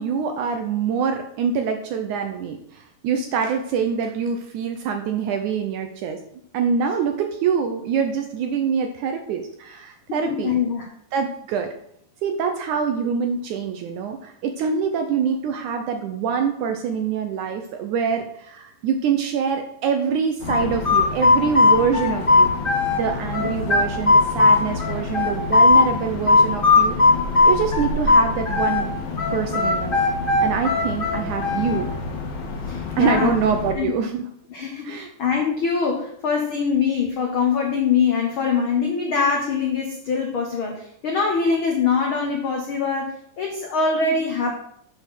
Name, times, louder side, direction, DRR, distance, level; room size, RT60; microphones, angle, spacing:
voice 1, 0.0-6.2 6.5-10.5 11.1-11.7 12.2-22.5 22.9-27.0 27.4-28.9 29.3-30.1 30.4-31.9 33.0-34.3 34.8-35.1, right 6 dB, 75° right, 5 dB, 1.8 m, -25 dB
voice 2, 10.2-10.9 32.7-33.3 33.8-33.9 34.5-44.5, left 5 dB, 80° left, 1 dB, 1.1 m, -23 dB
sound 1, 20.4-33.7, left 4 dB, 60° left, 2.5 m, -30 dB
sound 2, 20.5-23.0 23.3-25.9 26.3-28.8 29.2-31.8, left 3 dB, 30° left, 1.0 m, -17 dB
7.7 x 6.1 x 6.1 m, 0.70 s
omnidirectional pair, 4.2 m